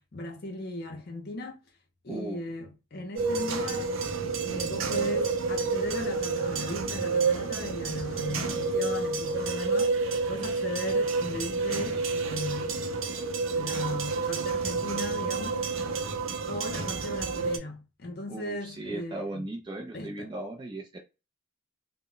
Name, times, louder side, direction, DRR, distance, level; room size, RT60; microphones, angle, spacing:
voice 1, 0.0-1.6 2.0-3.9 4.5-12.9 13.6-15.6 16.5-19.5 19.9-20.3, left 2 dB, 50° left, 0.5 m, -37 dB
voice 2, 2.1-2.4 18.3-21.0, right 2 dB, 20° right, 0.3 m, -37 dB
sound 1, 3.2-17.6, right 4 dB, 85° right, 0.5 m, -29 dB
2.1 x 2.0 x 3.7 m
head